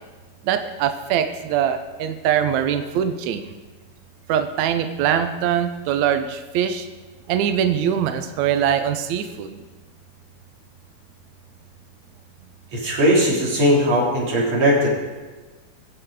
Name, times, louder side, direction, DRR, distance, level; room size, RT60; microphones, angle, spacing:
voice 1, 0.4-3.5 4.3-6.9 7.3-9.6, right 9 dB, 85° right, 8 dB, 1.6 m, -22 dB
voice 2, 12.7-14.9, equal, 45° right, -4 dB, 4.3 m, -18 dB
22.0 x 7.9 x 4.8 m, 1.3 s
omnidirectional pair, 4.3 m